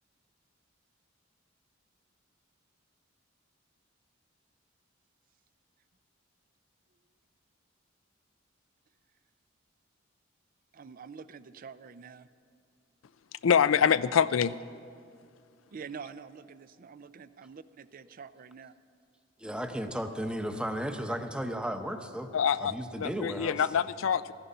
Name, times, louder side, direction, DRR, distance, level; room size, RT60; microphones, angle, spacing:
voice 1, 10.7-12.3 15.7-18.7, right 6 dB, 45° right, 13 dB, 0.4 m, -46 dB
voice 2, 13.4-14.5 22.3-24.3, left 7 dB, 85° left, 15 dB, 0.4 m, -25 dB
voice 3, 19.4-22.3 22.6-23.7, equal, 5° right, 7 dB, 0.8 m, -34 dB
15.0 x 14.0 x 5.5 m, 2.2 s
head